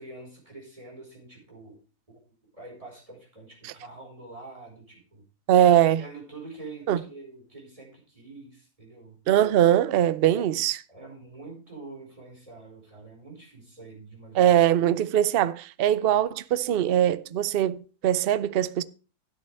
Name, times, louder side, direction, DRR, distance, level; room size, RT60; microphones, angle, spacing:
voice 1, 0.0-1.8 2.1-2.2 2.5-5.2 6.0-9.2 10.3-10.6 10.9-14.4, right 3 dB, 20° right, 4.9 m, -45 dB
voice 2, 5.5-6.0 6.9-7.0 9.3-10.8 14.3-18.8, right 11 dB, 70° right, 0.5 m, -21 dB
13.0 x 9.4 x 3.4 m
omnidirectional pair, 1.7 m